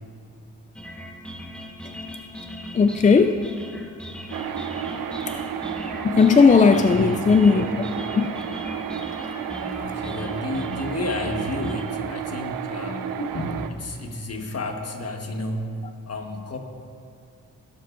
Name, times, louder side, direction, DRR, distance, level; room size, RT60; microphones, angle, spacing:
sound 1, 0.8-11.8, left 1 dB, 5° left, 1.3 m, -38 dB
voice 1, 2.7-3.4 6.0-7.7 8.1-8.3 9.3-9.6 13.2-13.3, left 5 dB, 25° left, 8 dB, 0.3 m, -17 dB
sound 2, 4.3-13.7, right 8 dB, 85° right, 0.6 m, -32 dB
voice 2, 4.8-5.6 6.7-7.2 7.5-7.8 9.7-15.7 16.1-16.6, left 2 dB, 50° left, 4 dB, 1.4 m, -32 dB
17.0 x 11.5 x 2.6 m, 2.4 s
cardioid pair, 80°, 33 cm